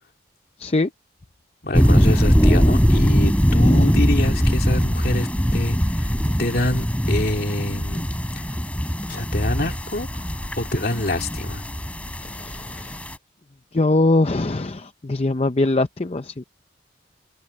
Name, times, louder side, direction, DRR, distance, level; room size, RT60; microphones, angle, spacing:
voice 1, 0.6-0.9 12.2-13.0 13.7-16.4, left 2 dB, 30° left, 0.6 m, -22 dB
voice 2, 1.6-6.1 6.4-8.1 8.4-8.5 9.1-10.2 10.6-11.6, left 1 dB, 55° left, 2.9 m, -26 dB
sound 1, 1.7-13.2, equal, 5° left, 3.2 m, -21 dB
head